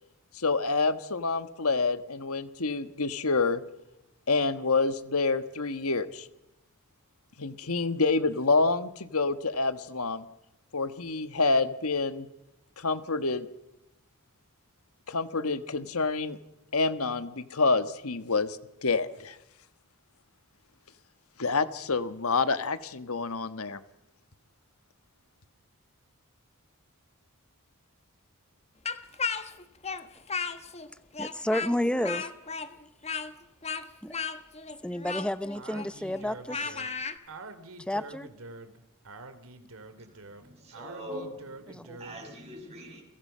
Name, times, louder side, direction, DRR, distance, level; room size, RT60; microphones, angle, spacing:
voice 1, 0.3-3.6 4.3-6.3 7.4-10.2 10.7-12.3 12.8-13.5 15.1-16.4 16.7-19.4 21.4-23.8, left 3 dB, 75° left, 11 dB, 1.5 m, -27 dB
Speech, 28.9-30.9 31.1-37.2, left 5 dB, 30° left, 1.4 m, -34 dB
voice 2, 31.2-32.3 34.0-34.2 34.8-36.8 37.8-38.3 41.7-42.0, left 1 dB, 5° left, 13 dB, 1.0 m, -31 dB
Speech 2, 35.5-42.3, right 3 dB, 65° right, 2.8 m, -46 dB
voice 3, 40.4-43.0, equal, 30° right, 0 dB, 6.7 m, -42 dB
30.0 x 23.0 x 5.7 m, 0.93 s
head